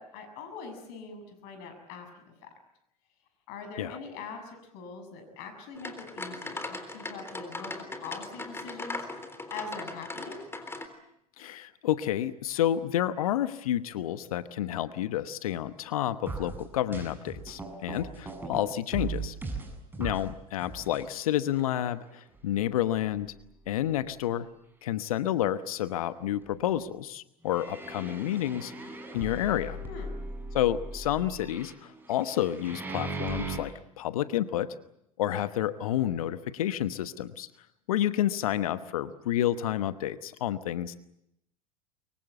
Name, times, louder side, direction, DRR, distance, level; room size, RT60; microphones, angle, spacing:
voice 1, 0.0-2.5 3.5-9.1 9.5-10.4 29.8-30.1, left 4 dB, 60° left, 8 dB, 6.9 m, -43 dB
sound 1, 5.8-10.9, left 2 dB, 15° left, 3.7 m, -39 dB
voice 2, 11.4-19.3 20.0-23.3 23.7-24.5 24.8-28.7 29.1-29.8 30.5-34.7 35.2-37.5 37.9-41.0, left 12 dB, 75° left, 14 dB, 1.1 m, -30 dB
sound 2, 16.3-18.6 18.9-20.3 20.6-21.1 21.6-21.7 22.3-22.4 23.0-23.1 27.4-33.6, right 3 dB, 10° right, 7.2 m, -38 dB
23.5 x 23.5 x 8.1 m, 0.79 s
hypercardioid pair, 80°, 18 cm